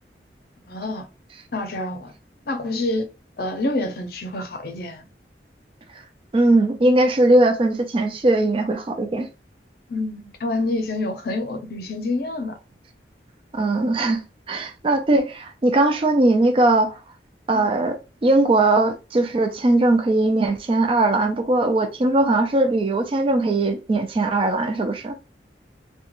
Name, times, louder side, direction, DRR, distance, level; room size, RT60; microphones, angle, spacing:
voice 1, 0.7-1.1 1.5-2.1 2.5-3.1 3.4-5.0 9.9-12.6 17.5-17.7, left 2 dB, 55° left, 0.6 m, -27 dB
voice 2, 6.3-9.3 13.5-17.0 17.5-18.0 18.2-25.1, right 2 dB, 30° right, 0.3 m, -19 dB
2.4 x 2.2 x 2.9 m
head